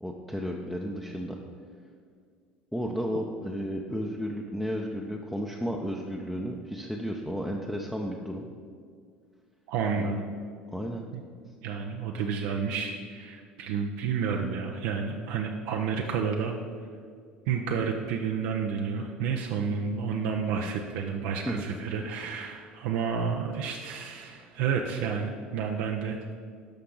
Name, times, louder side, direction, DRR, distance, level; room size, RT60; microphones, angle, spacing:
voice 1, 0.0-1.4 2.7-8.5 10.0-10.2 10.7-11.0 21.5-21.6, equal, ahead, -1 dB, 0.8 m, -33 dB
voice 2, 9.7-10.3 11.1-11.2 11.6-16.5 17.5-26.2, right 6 dB, 65° right, 2 dB, 0.6 m, -30 dB
11.5 x 5.8 x 3.9 m, 2.1 s
hypercardioid pair, 70°, 5 cm